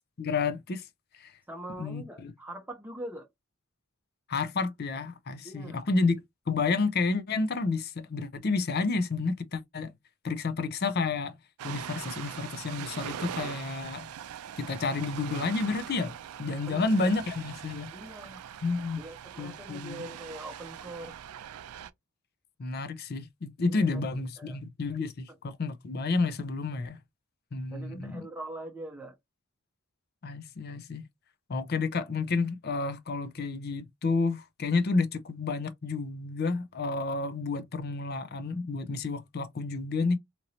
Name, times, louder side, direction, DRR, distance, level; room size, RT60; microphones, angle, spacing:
voice 1, 0.2-0.9 1.1-1.3 1.8-2.3 4.3-6.2 6.5-9.9 10.2-11.4 11.6-14.1 14.6-17.9 18.6-19.0 19.4-20.1 22.6-27.0 27.5-28.2 30.2-31.0 31.5-40.2, left 3 dB, 45° left, 0.4 m, -30 dB
voice 2, 1.5-3.3 5.4-5.8 16.6-17.2 17.9-18.4 18.9-21.2 23.7-24.0 24.4-24.6 25.3-25.4 27.7-29.2, right 1 dB, 10° right, 0.8 m, -42 dB
Ocean, 11.6-21.9, right 9 dB, 80° right, 0.3 m, -42 dB
3.0 x 2.6 x 2.8 m
head